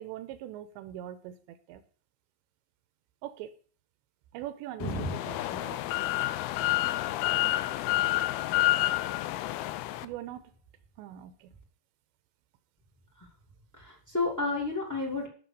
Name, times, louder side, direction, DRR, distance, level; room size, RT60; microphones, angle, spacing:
voice 1, 0.0-1.8 3.2-3.5 4.3-5.8 10.0-10.5 11.0-11.5, right 12 dB, 85° right, 11 dB, 3.0 m, -42 dB
sound 1, 4.8-10.1, left 17 dB, 85° left, 2.2 m, -29 dB
voice 2, 4.8-5.6 13.2-13.3 13.7-15.3, left 2 dB, 10° left, 2 dB, 1.0 m, -32 dB
12.0 x 6.1 x 6.7 m, 0.43 s
omnidirectional pair, 5.2 m